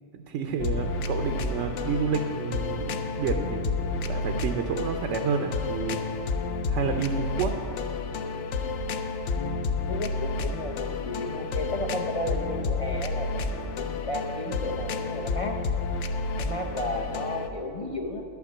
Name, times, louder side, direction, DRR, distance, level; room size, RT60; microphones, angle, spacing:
voice 1, 0.1-6.2 6.7-7.6, right 5 dB, 75° right, 5 dB, 0.9 m, -30 dB
sound 1, 0.6-17.5, left 3 dB, 70° left, 0.9 m, -30 dB
voice 2, 9.4-15.6 16.4-18.2, left 1 dB, 45° left, 4 dB, 0.4 m, -33 dB
11.0 x 5.9 x 7.3 m, 2.9 s
omnidirectional pair, 1.3 m